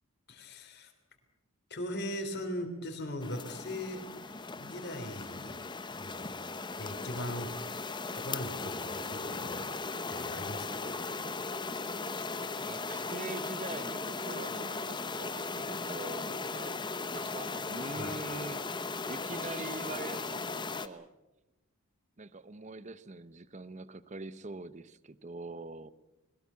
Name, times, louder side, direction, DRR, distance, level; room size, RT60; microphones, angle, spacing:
voice 1, 0.3-0.9 1.7-5.6 6.0-6.3 6.8-9.7 10.1-10.9 17.9-18.1, left 1 dB, 50° left, 4 dB, 3.4 m, -40 dB
sound 1, 3.2-20.9, left 3 dB, 20° left, 0.8 m, -37 dB
voice 2, 12.6-16.8 17.1-18.6 19.1-21.1 22.2-25.9, right 3 dB, 30° right, 16 dB, 0.7 m, -43 dB
21.0 x 19.0 x 8.4 m, 1.0 s
head